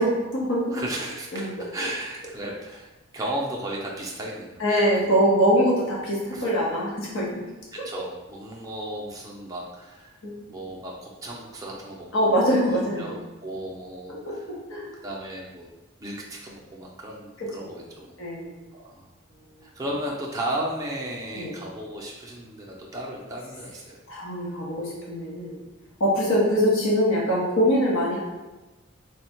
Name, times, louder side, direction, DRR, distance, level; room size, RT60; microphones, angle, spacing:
voice 1, 0.0-0.8 1.3-1.5 4.6-7.4 10.2-10.3 12.1-13.0 14.1-14.4 14.7-14.9 17.4-17.7 18.2-18.5 21.3-21.5 24.1-25.5 26.0-28.2, equal, 80° left, -5 dB, 1.2 m, -23 dB
voice 2, 0.7-2.9 3.1-5.0 6.3-6.5 7.7-10.1 10.5-14.5 15.0-15.7 16.0-18.1 18.7-19.1 19.6-24.0, right 1 dB, 15° right, -3 dB, 0.6 m, -35 dB
3.4 x 2.3 x 4.4 m, 1.1 s
head